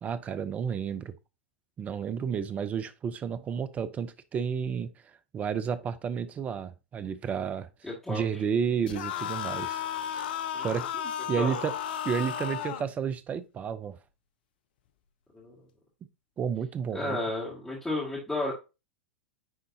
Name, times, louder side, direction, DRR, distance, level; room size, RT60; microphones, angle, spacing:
voice 1, 0.0-1.1 1.8-4.9 5.3-7.7 8.1-9.8 10.1-10.2 10.6-11.7 12.0-14.0 16.4-17.2, right 7 dB, 25° right, 0.7 m, -31 dB
voice 2, 7.8-8.2 10.5-10.7 11.4-11.6 15.3-15.6 16.9-18.5, left 2 dB, 5° left, 2.5 m, -32 dB
sound 1, 8.9-12.9, left 9 dB, 60° left, 0.7 m, -34 dB
9.5 x 3.8 x 2.8 m
figure-of-eight pair, 95°, 6 cm